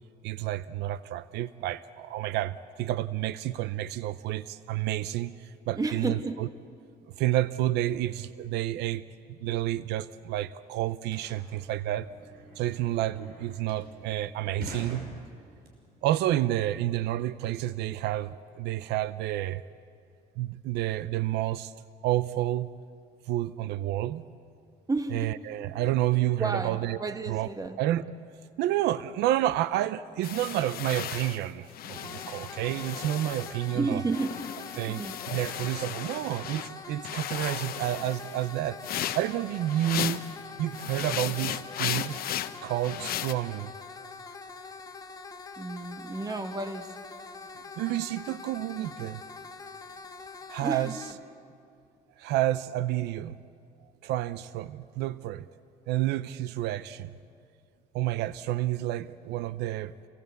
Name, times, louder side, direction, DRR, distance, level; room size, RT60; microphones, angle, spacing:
voice 1, 0.2-6.5 7.2-9.0 9.4-12.1 12.6-15.0 16.0-19.6 20.4-21.7 22.0-22.7 23.3-24.2 25.1-27.0 27.3-27.5 27.8-28.0 28.6-34.0 34.8-35.0 35.3-38.8 39.1-40.2 40.6-42.1 42.6-43.7 47.8-49.2 50.5-50.9 52.2-53.4 54.0-55.5 55.9-57.1 57.9-59.9, right 14 dB, 85° right, 16 dB, 0.6 m, -30 dB
voice 2, 5.7-6.4 24.9-25.3 25.7-26.0 26.4-27.8 33.7-34.5 34.9-35.2 40.1-40.2 45.6-46.9 50.6-51.0, right 3 dB, 20° right, 8 dB, 1.6 m, -32 dB
sound 1, 10.6-15.7, right 1 dB, 65° right, 5.9 m, -45 dB
sound 2, 30.2-33.8 34.1-36.7 37.0-40.4 40.7-43.3, left 12 dB, 60° left, 0.9 m, -36 dB
sound 3, 32.0-51.1, left 4 dB, 20° left, 1.6 m, -44 dB
27.5 x 20.0 x 8.2 m, 2.3 s
cardioid pair, 110°, 17 cm